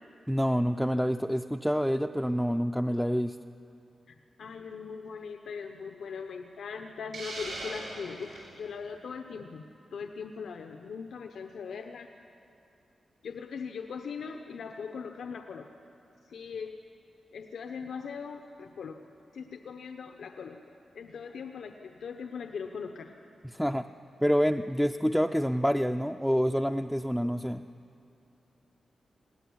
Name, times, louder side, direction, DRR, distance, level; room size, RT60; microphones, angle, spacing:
voice 1, 0.3-3.4 23.5-23.9 24.2-27.6, equal, ahead, 6 dB, 0.4 m, -27 dB
voice 2, 4.1-9.6 9.9-12.1 13.2-15.7 16.3-16.8 17.3-19.1 19.3-20.6 20.9-23.1, left 5 dB, 90° left, 5 dB, 0.9 m, -40 dB
Hiss, 7.1-8.5, right 2 dB, 80° right, 7.8 m, -39 dB
20.0 x 17.0 x 9.5 m, 2.6 s
wide cardioid pair, 130°, 0 cm